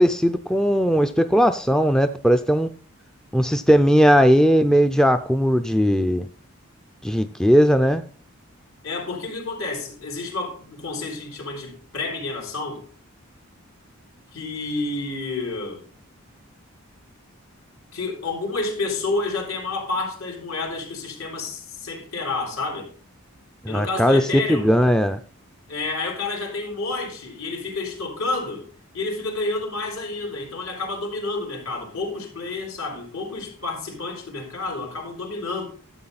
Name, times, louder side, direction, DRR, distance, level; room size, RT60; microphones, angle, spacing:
voice 1, 0.0-2.7 3.3-6.3 7.0-8.0 23.6-25.2, equal, 5° left, 0.4 m, -18 dB
voice 2, 8.8-12.8 14.3-15.8 17.9-22.9 23.7-24.7 25.7-28.6 28.9-35.6, left 3 dB, 75° left, 3.7 m, -29 dB
12.5 x 7.7 x 4.1 m
head